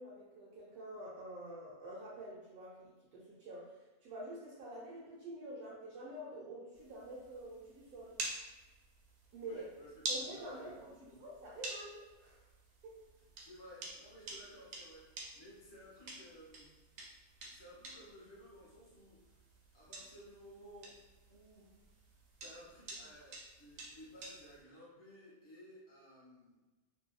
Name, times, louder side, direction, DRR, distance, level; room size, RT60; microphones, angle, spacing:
voice 1, 0.0-8.2 9.3-9.6 10.1-12.4 12.8-12.9, right 1 dB, 85° right, -7 dB, 1.1 m, -48 dB
sound 1, 6.7-24.6, right 2 dB, 65° right, 0.8 m, -49 dB
voice 2, 9.4-11.2 13.4-16.7 17.5-19.4 19.7-21.0 21.3-21.7 22.4-26.5, equal, 25° left, -6 dB, 0.5 m, -56 dB
2.6 x 2.0 x 2.3 m, 1.2 s
omnidirectional pair, 1.5 m